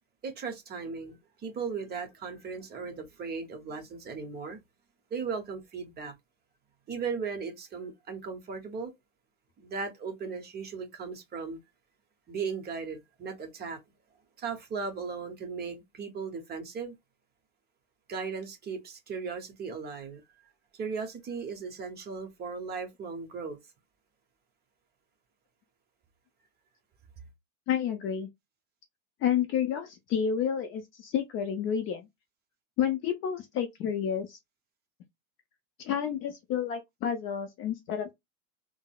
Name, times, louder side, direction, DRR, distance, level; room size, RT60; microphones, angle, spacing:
voice 1, 0.2-4.6 5.1-6.1 6.9-8.9 9.6-11.6 12.3-13.8 14.4-16.9 18.1-20.2 20.7-23.6, right 5 dB, 25° right, 0.8 m, -37 dB
voice 2, 27.7-28.3 29.2-32.1 32.8-34.4 35.8-38.1, left 8 dB, 30° left, 0.5 m, -30 dB
3.7 x 2.0 x 2.3 m
supercardioid pair, 125°, 41 cm